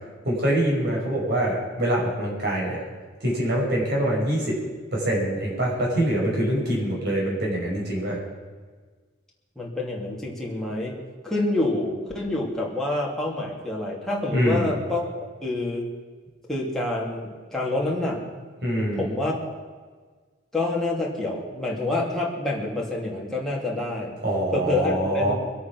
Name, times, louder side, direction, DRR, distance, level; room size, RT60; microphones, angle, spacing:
voice 1, 0.2-2.8 3.2-4.6 4.9-8.2 14.3-14.7 18.6-19.1 24.2-25.3, right 1 dB, 60° right, -3 dB, 5.7 m, -24 dB
voice 2, 9.6-11.0 11.2-15.9 16.5-18.5 19.0-19.5 20.5-24.2 24.5-25.3, left 2 dB, ahead, -4 dB, 2.9 m, -27 dB
23.0 x 8.5 x 6.1 m, 1.5 s
head